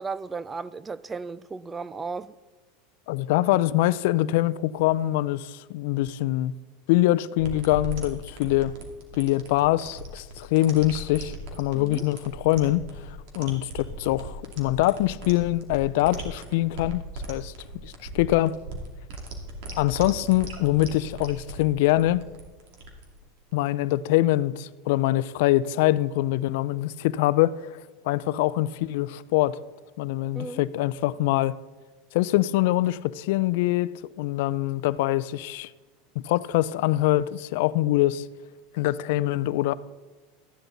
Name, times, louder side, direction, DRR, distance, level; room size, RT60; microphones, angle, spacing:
voice 1, 0.0-2.3 11.7-12.1 30.4-30.7, right 4 dB, 15° right, 0.3 m, -35 dB
voice 2, 3.1-6.5 6.9-8.7 9.2-17.5 17.8-18.6 19.8-22.3 23.5-27.8 28.1-29.6 30.0-31.6 32.1-33.9 34.2-35.7 36.2-38.3 38.7-39.7, left 16 dB, 70° left, 0.4 m, -24 dB
sound 1, 7.4-23.6, right 2 dB, 70° right, 2.4 m, -38 dB
13.5 x 10.0 x 4.0 m
supercardioid pair, 130°, 0 cm